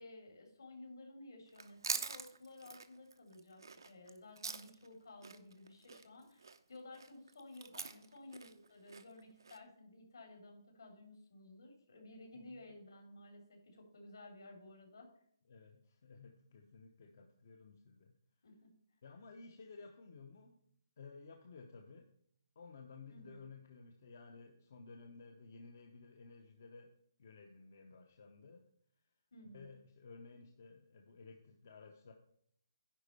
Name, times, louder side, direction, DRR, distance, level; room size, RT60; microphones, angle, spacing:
voice 1, 0.0-15.1 18.4-18.7 23.1-23.4 29.3-29.7, left 2 dB, 65° left, 2 dB, 3.5 m, -55 dB
Chewing mastication, 1.5-4.9 5.2-9.6, right 4 dB, 80° right, 0.9 m, -45 dB
voice 2, 15.5-18.2 19.0-20.6 21.0-22.1 22.6-26.9 27.2-28.7 29.5-32.1, left 4 dB, 35° left, 4 dB, 0.8 m, -55 dB
10.0 x 4.3 x 6.7 m, 0.66 s
hypercardioid pair, 180°, 2 cm